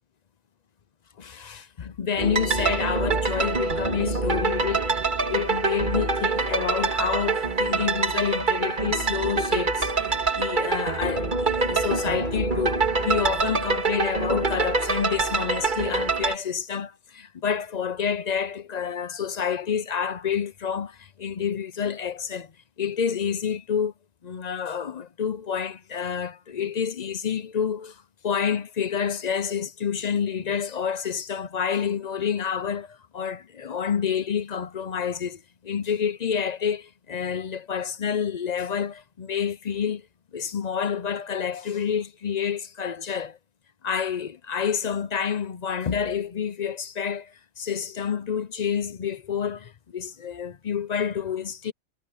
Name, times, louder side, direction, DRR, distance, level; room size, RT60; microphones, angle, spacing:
voice 1, 1.2-4.9 5.3-9.9 10.3-22.5 22.8-23.9 24.2-40.0 40.3-43.4 43.8-51.7, left 7 dB, 45° left, 0.6 m, -28 dB
sound 1, 2.2-16.4, right 4 dB, 45° right, 2.2 m, -25 dB
omnidirectional pair, 1.2 m